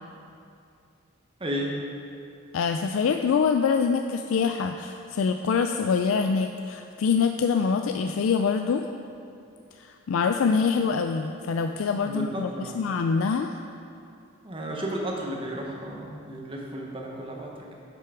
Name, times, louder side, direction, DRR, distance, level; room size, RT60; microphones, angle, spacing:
voice 1, 1.4-1.8 12.0-12.8 14.4-17.7, equal, 25° right, -1 dB, 1.0 m, -33 dB
voice 2, 2.5-8.9 9.8-13.5, left 5 dB, 90° left, 6 dB, 0.3 m, -25 dB
9.2 x 6.0 x 4.9 m, 2.5 s
head